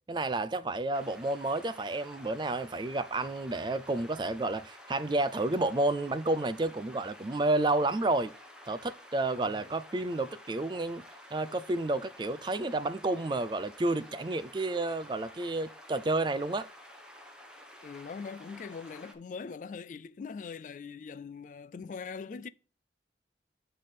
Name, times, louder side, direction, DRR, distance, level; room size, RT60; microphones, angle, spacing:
voice 1, 0.1-8.3 8.7-11.0 11.3-16.7, right 2 dB, 25° right, 0.4 m, -30 dB
sound 1, 0.9-19.1, left 1 dB, 5° right, 1.1 m, -51 dB
voice 2, 9.3-9.7 17.8-22.5, left 5 dB, 45° left, 0.3 m, -42 dB
9.8 x 3.4 x 4.2 m
head